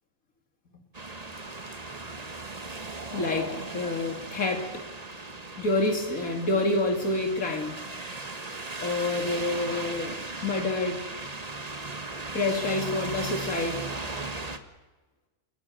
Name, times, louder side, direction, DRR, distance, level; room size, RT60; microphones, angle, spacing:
sound 1, 0.9-14.6, right 3 dB, 30° right, 1.5 m, -37 dB
voice 1, 3.1-4.8 5.6-7.8 8.8-10.2 10.4-11.0 12.3-13.9, left 2 dB, 75° left, 2 dB, 2.7 m, -28 dB
29.0 x 15.5 x 9.1 m, 1.2 s
omnidirectional pair, 1.5 m